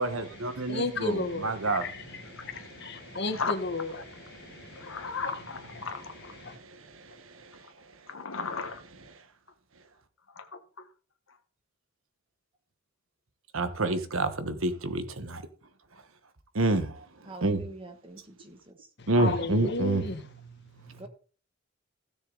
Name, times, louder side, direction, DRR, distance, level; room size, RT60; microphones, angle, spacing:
voice 1, 0.0-3.3 4.0-5.0 6.4-8.1 9.2-9.3 9.7-9.8 13.5-15.5 15.9-16.0 16.5-17.6 18.2-18.3 19.1-20.2 20.8-21.0, right 2 dB, 80° right, 1.4 m, -31 dB
voice 2, 0.7-1.5 1.8-1.9 2.3-3.9 4.3-5.0 6.4-6.5 19.0-20.2 20.5-21.1, left 2 dB, 55° left, 1.4 m, -33 dB
voice 3, 2.4-2.7 3.1-3.6 4.7-6.3 7.6-7.7 8.1-8.8 10.3-10.9 11.3-11.4, left 5 dB, 75° left, 1.4 m, -36 dB
voice 4, 17.3-18.7 21.0-21.1, right 1 dB, 25° right, 1.3 m, -45 dB
16.0 x 6.8 x 4.0 m
head